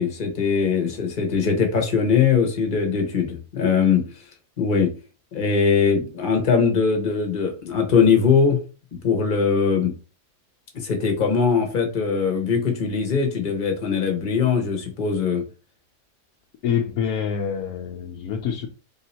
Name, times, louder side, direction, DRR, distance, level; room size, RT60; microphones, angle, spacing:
voice 1, 0.0-4.0 4.6-4.9 5.3-8.6 9.0-9.9 10.7-15.4, left 6 dB, 35° left, 1.0 m, -21 dB
voice 2, 16.6-18.7, left 7 dB, 70° left, 1.0 m, -26 dB
3.6 x 2.7 x 4.2 m
omnidirectional pair, 1.7 m